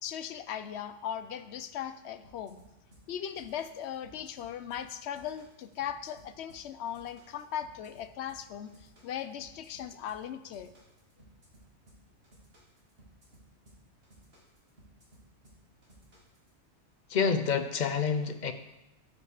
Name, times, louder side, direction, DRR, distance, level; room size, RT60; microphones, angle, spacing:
voice 1, 0.0-2.6 3.1-10.7, left 9 dB, 75° left, 11 dB, 0.9 m, -38 dB
sound 1, 2.2-16.5, right 1 dB, 60° right, 2.4 m, -59 dB
voice 2, 17.1-18.5, left 6 dB, 50° left, 9 dB, 0.7 m, -28 dB
11.5 x 5.3 x 4.9 m, 0.93 s
omnidirectional pair, 1.1 m